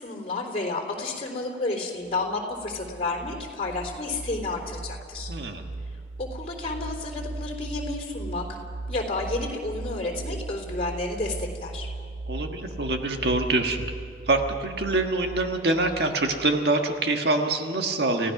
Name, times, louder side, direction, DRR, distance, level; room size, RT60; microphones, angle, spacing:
voice 1, 0.0-5.3 6.2-8.6 8.9-11.9, left 2 dB, 35° left, 1 dB, 3.7 m, -31 dB
sound 1, 2.1-16.6, right 2 dB, 80° right, 1.2 m, -38 dB
voice 2, 5.3-5.6 12.3-13.8 14.3-18.3, right 2 dB, 60° right, 4 dB, 1.6 m, -25 dB
29.5 x 16.5 x 6.0 m, 2.3 s
head